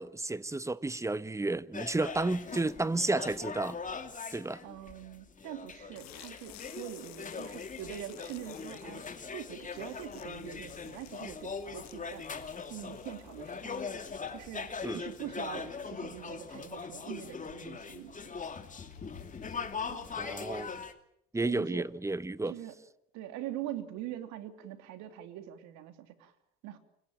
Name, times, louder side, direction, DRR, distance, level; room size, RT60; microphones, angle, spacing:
voice 1, 0.0-3.8 4.3-4.6 14.8-15.0 20.2-20.7 21.3-22.5, right 2 dB, 10° right, 1.0 m, -32 dB
sound 1, 1.7-20.9, left 5 dB, 25° left, 2.8 m, -41 dB
voice 2, 4.6-12.2 12.7-14.0 14.3-18.2 19.9-20.1 21.4-21.9 22.5-22.7 23.1-26.3 26.6-26.8, right 12 dB, 70° right, 3.0 m, -43 dB
sound 2, 5.9-15.4, left 16 dB, 65° left, 1.8 m, -55 dB
sound 3, 9.9-20.9, left 9 dB, 90° left, 4.3 m, -59 dB
29.0 x 17.0 x 9.0 m
hypercardioid pair, 80°, 29 cm